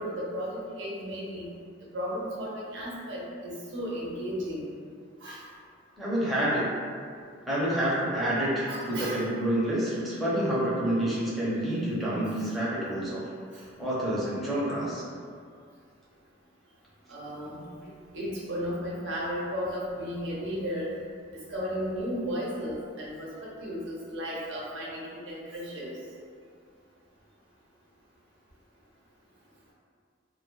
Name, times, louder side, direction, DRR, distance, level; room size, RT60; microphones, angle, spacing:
voice 1, 0.0-1.5 1.9-4.6 5.2-5.4 8.7-9.2 11.7-11.8 17.1-17.6 18.1-20.9 21.5-25.9, equal, 75° right, -6 dB, 0.7 m, -34 dB
voice 2, 6.0-6.6 7.4-15.0, right 1 dB, ahead, -9 dB, 0.5 m, -28 dB
2.2 x 2.1 x 3.0 m, 2.2 s
head